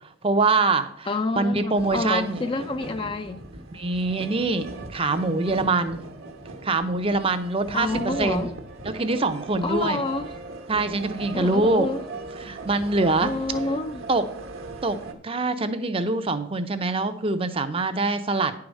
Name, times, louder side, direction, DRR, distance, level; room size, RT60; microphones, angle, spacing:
voice 1, 0.0-2.4 3.7-6.0 6.6-8.6 8.8-10.0 10.7-11.9 12.4-13.3 14.1-14.3 14.8-18.5, right 3 dB, 25° right, 0.6 m, -24 dB
voice 2, 1.1-3.4 7.7-8.5 9.6-10.3 11.3-12.0 13.2-14.0, left 3 dB, 25° left, 0.4 m, -28 dB
sound 1, 1.7-15.1, right 3 dB, 70° right, 1.1 m, -39 dB
9.9 x 4.8 x 6.3 m
head